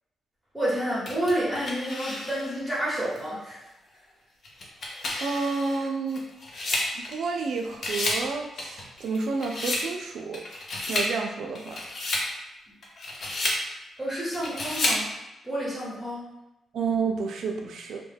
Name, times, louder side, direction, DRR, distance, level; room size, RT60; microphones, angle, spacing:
voice 1, 0.5-3.6 14.0-15.1 15.4-16.3, right 1 dB, 5° right, -8 dB, 0.9 m, -29 dB
sound 1, 1.1-2.6 3.2-3.3 4.4-7.4 7.7-8.3 8.6-9.9 10.3-11.1 11.6-12.3 12.8-13.6 14.3-15.0, left 2 dB, 45° left, 0.5 m, -31 dB
voice 2, 5.2-6.2 7.1-10.4 10.9-11.8 16.7-18.0, right 4 dB, 70° right, 2 dB, 0.4 m, -30 dB
2.2 x 2.1 x 3.3 m, 0.99 s
wide cardioid pair, 150°, 0 cm